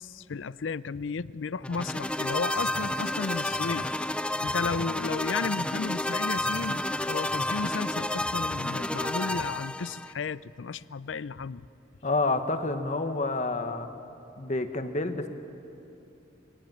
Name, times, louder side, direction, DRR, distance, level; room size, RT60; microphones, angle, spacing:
voice 1, 0.0-3.9 4.4-11.6, left 5 dB, 70° left, 18 dB, 0.5 m, -34 dB
sound 1, 1.6-10.1, left 1 dB, 5° left, 0.4 m, -30 dB
voice 2, 12.0-13.9 14.4-15.3, left 2 dB, 40° left, 7 dB, 1.3 m, -28 dB
22.5 x 18.5 x 8.9 m, 2.8 s
head